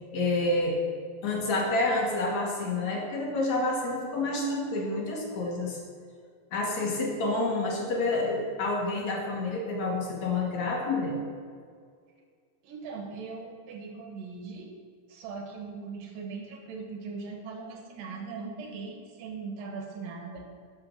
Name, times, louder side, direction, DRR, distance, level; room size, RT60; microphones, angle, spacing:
voice 1, 0.1-0.8 1.2-5.8 6.5-11.2, left 2 dB, 60° left, -1 dB, 2.5 m, -28 dB
voice 2, 12.6-14.7 15.1-20.5, right 4 dB, 75° right, 2 dB, 2.9 m, -40 dB
11.5 x 6.3 x 6.4 m, 2.1 s
omnidirectional pair, 4.0 m